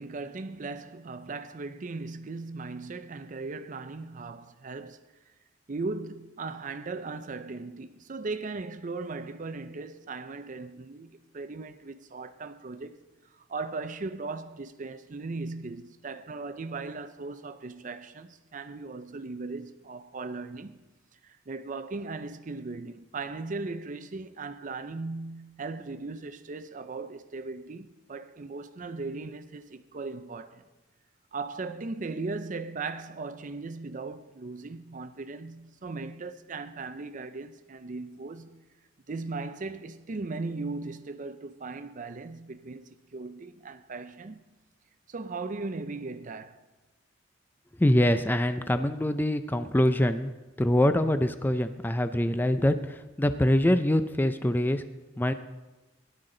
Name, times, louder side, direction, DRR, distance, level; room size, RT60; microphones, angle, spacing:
voice 1, 0.0-5.0 5.7-13.0 13.3-20.8 21.2-30.6 31.3-38.7 39.1-44.4 45.1-46.6, right 3 dB, 45° right, 0.5 m, -38 dB
voice 2, 47.8-50.3 50.6-54.8 55.2-55.3, left 1 dB, 10° left, 0.4 m, -24 dB
17.0 x 11.5 x 3.9 m
head